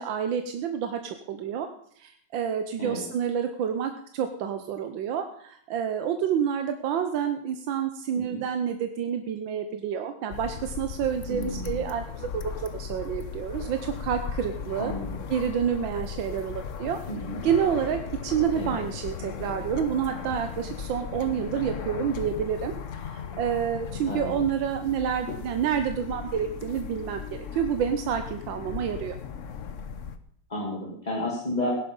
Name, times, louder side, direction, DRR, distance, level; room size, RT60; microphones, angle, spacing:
voice 1, 0.0-1.7 2.0-14.9 15.3-17.0 17.4-29.2, right 8 dB, 90° right, 7 dB, 1.6 m, -29 dB
sound 1, 10.3-30.2, left 7 dB, 50° left, 1.1 m, -37 dB
voice 2, 11.3-11.8 14.8-15.2 17.1-17.4 18.6-18.8 24.0-24.3 30.5-31.8, left 1 dB, 20° left, -3 dB, 2.6 m, -32 dB
17.0 x 10.5 x 5.4 m, 0.66 s
omnidirectional pair, 2.0 m